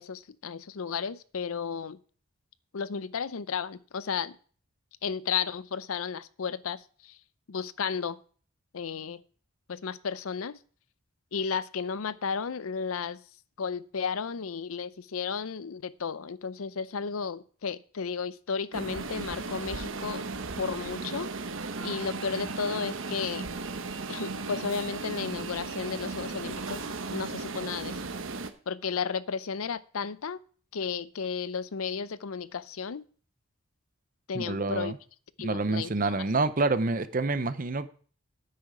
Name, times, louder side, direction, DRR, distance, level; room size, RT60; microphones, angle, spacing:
voice 1, 0.0-2.0 2.7-4.3 5.0-7.2 7.5-8.2 8.7-9.2 9.7-10.6 11.3-13.2 13.6-20.3 20.6-21.3 21.8-23.5 24.1-26.8 27.1-28.0 28.7-30.4 30.7-33.0 34.3-34.9 35.4-36.3, left 6 dB, 85° left, 0.6 m, -33 dB
sound 1, 18.7-28.5, right 3 dB, 70° right, 1.0 m, -36 dB
voice 2, 34.3-35.0 35.4-37.9, right 3 dB, 40° right, 0.7 m, -27 dB
9.6 x 8.5 x 4.8 m
head